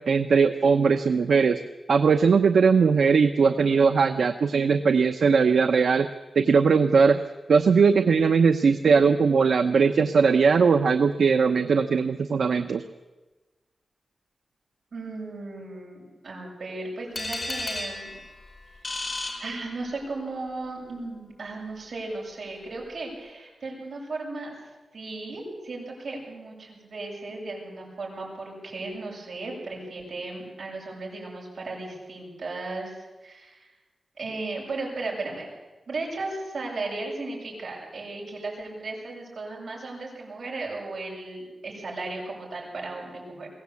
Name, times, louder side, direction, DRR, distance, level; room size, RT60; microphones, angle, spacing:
voice 1, 0.1-1.6 1.9-6.1 6.3-7.2 7.5-12.8, right 5 dB, 75° right, 8 dB, 0.8 m, -20 dB
voice 2, 14.9-18.2 19.4-24.5 24.9-33.7 34.2-35.5 35.9-43.5, right 3 dB, 60° right, -1 dB, 7.8 m, -35 dB
sound 1, 17.1-20.2, left 2 dB, 30° left, 4.1 m, -34 dB
22.0 x 17.0 x 8.5 m, 1.2 s
wide cardioid pair, 175°, 0 cm